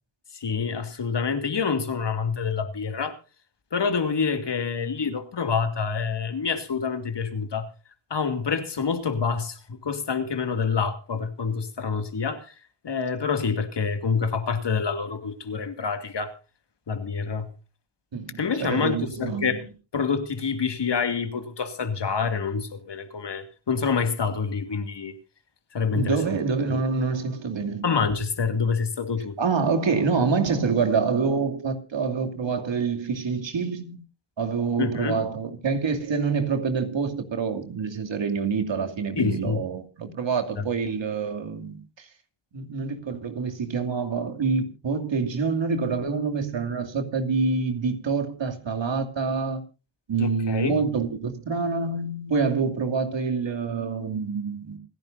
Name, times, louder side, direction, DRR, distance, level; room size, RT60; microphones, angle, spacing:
voice 1, 0.3-3.2 3.7-7.7 8.1-12.5 12.8-16.3 16.9-17.5 18.4-19.7 19.9-25.1 25.7-26.2 26.7-26.8 27.8-29.4 34.8-35.2 39.2-39.6 40.6-40.7 50.2-50.8, left 5 dB, 55° left, 2.5 m, -27 dB
voice 2, 18.1-19.5 25.9-27.8 29.4-34.0 34.4-42.1 42.5-49.6 50.1-54.8, right 5 dB, 60° right, 2.8 m, -26 dB
27.5 x 10.5 x 2.7 m
supercardioid pair, 40°, 49 cm